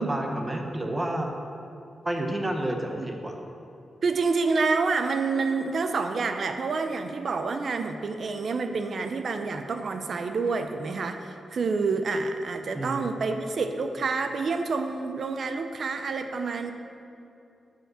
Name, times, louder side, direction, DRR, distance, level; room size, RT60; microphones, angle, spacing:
voice 1, 0.0-1.3 2.0-3.4 12.7-13.1, right 1 dB, 20° right, 3 dB, 1.0 m, -30 dB
voice 2, 4.0-16.7, right 4 dB, 60° right, 7 dB, 0.5 m, -28 dB
8.9 x 5.1 x 6.2 m, 2.6 s
cardioid pair, 80°, 0 cm